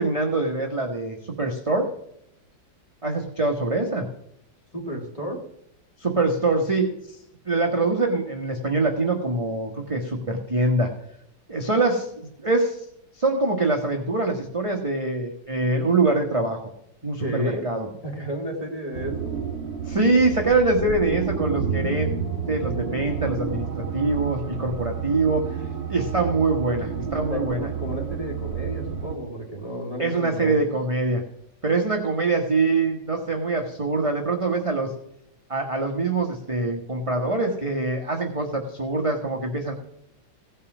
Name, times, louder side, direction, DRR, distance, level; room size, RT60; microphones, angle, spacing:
voice 1, 0.0-1.9 3.0-4.1 6.0-7.2 7.4-10.9 11.5-12.8 13.1-16.6 17.0-17.9 19.9-22.1 22.5-23.7 23.9-25.5 25.9-27.7 30.0-31.2 31.6-34.9 35.5-39.7, right 3 dB, 20° right, 1 dB, 1.1 m, -24 dB
voice 2, 4.7-5.4 17.2-17.7 18.0-19.3 27.3-30.6, right 1 dB, 20° left, 0 dB, 2.4 m, -32 dB
sound 1, 18.9-29.2, right 7 dB, 55° right, 2.1 m, -30 dB
16.5 x 5.6 x 6.1 m, 0.76 s
omnidirectional pair, 2.1 m